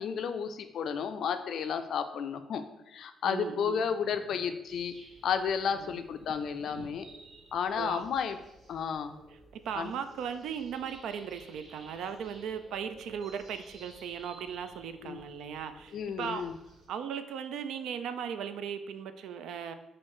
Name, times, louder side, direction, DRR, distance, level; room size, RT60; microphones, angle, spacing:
voice 1, 0.0-4.9 5.2-7.1 7.5-8.4 8.7-9.2 9.7-10.0 15.0-15.2 15.9-16.6, left 7 dB, 70° left, 8 dB, 0.3 m, -32 dB
voice 2, 3.2-3.8 5.8-6.0 6.8-6.9 7.8-8.0 8.8-9.0 9.5-16.5 16.9-19.7, right 7 dB, 80° right, 10 dB, 0.3 m, -37 dB
sound 1, 4.7-16.9, right 1 dB, 60° right, 1.4 m, -55 dB
5.5 x 2.6 x 3.1 m, 0.90 s
cardioid pair, 90°, 0 cm